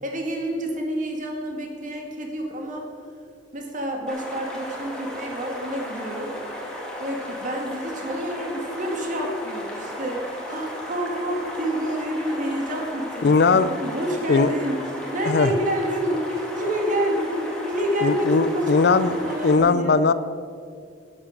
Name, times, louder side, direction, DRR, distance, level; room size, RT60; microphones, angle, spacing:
voice 1, 0.0-2.9 3.5-6.3 7.0-14.8 15.1-20.0, equal, 45° right, 2 dB, 2.0 m, -28 dB
sound 1, 4.1-19.6, equal, 5° left, 2.1 m, -35 dB
voice 2, 13.2-13.7 14.3-14.5 15.3-15.5 18.0-19.1 19.4-20.1, left 4 dB, 65° left, 15 dB, 0.4 m, -19 dB
11.0 x 8.6 x 6.4 m, 2.3 s
head